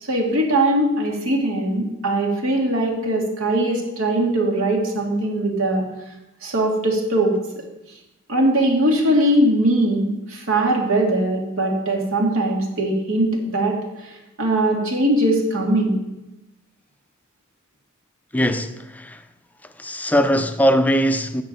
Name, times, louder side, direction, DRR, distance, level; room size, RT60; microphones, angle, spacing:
voice 1, 0.1-5.8 6.4-7.4 8.3-13.8 14.0-14.1 14.4-16.0, right 1 dB, 65° right, 2.7 m, -20 dB
voice 2, 18.3-19.2 19.8-21.4, equal, 5° left, 0.7 m, -20 dB
13.0 x 5.1 x 9.0 m
head